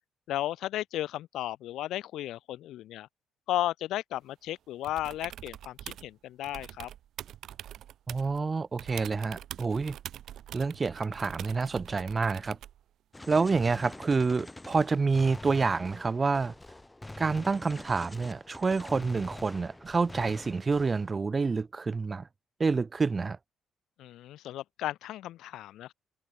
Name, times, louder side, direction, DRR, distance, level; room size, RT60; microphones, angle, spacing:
voice 1, 0.3-3.1 3.5-6.9 24.0-25.9, left 13 dB, 85° left, 0.6 m, -34 dB
sound 1, 4.8-6.1 6.4-8.4 8.8-12.8 14.7-14.8, right 11 dB, 65° right, 3.8 m, -44 dB
voice 2, 8.1-10.0 10.5-12.6 13.3-16.5 17.2-22.3 22.6-23.4, right 4 dB, 20° right, 0.8 m, -28 dB
Gunshot gunfire, 13.1-21.1, left 2 dB, 10° left, 2.5 m, -45 dB
cardioid pair, 160°, 0 cm